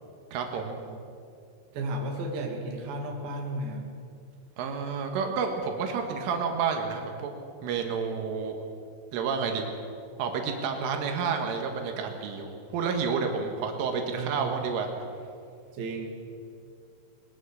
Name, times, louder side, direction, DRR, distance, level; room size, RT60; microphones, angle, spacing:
voice 1, 0.3-0.8 4.6-7.3 7.6-8.6 9.1-9.6 10.2-14.9, right 5 dB, 90° right, 3 dB, 4.3 m, -30 dB
voice 2, 1.7-3.9 14.1-14.5 15.8-16.1, right 1 dB, 55° right, 1 dB, 4.1 m, -33 dB
22.0 x 22.0 x 6.6 m, 2.4 s
omnidirectional pair, 5.5 m